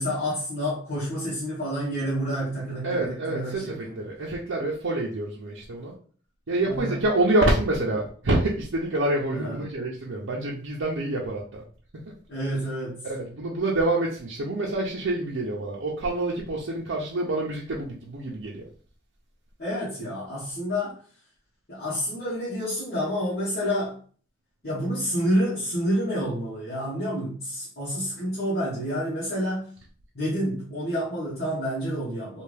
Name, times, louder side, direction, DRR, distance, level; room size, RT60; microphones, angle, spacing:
voice 1, 0.0-4.0 6.6-7.0 9.3-9.6 12.3-13.0 19.6-21.0 21.7-24.0 24.6-29.7 30.1-32.4, equal, 55° left, -10 dB, 1.2 m, -29 dB
voice 2, 2.8-5.9 6.5-11.6 13.0-18.6, right 2 dB, 90° right, -4 dB, 0.7 m, -27 dB
3.4 x 2.4 x 3.3 m, 0.43 s
head